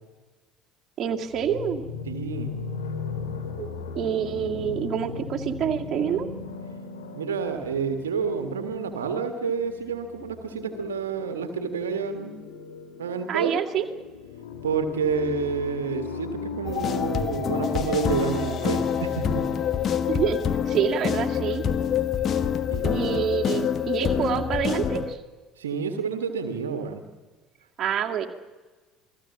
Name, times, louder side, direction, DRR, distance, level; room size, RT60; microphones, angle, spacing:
voice 1, 1.0-1.8 3.6-3.7 3.9-6.3 13.3-13.8 20.1-20.4 20.7-21.6 22.8-25.2 27.8-28.3, right 8 dB, 40° right, 1 dB, 2.3 m, -27 dB
sound 1, 1.2-20.0, left 5 dB, 70° left, 2.9 m, -38 dB
voice 2, 2.1-2.5 7.1-12.3 13.0-13.6 14.6-19.5 22.7-22.9 25.6-27.0, right 5 dB, 75° right, 7 dB, 1.7 m, -29 dB
sound 2, 16.6-25.1, left 8 dB, 40° left, 1.4 m, -26 dB
28.5 x 20.0 x 7.3 m, 1.3 s
figure-of-eight pair, 60°, 0 cm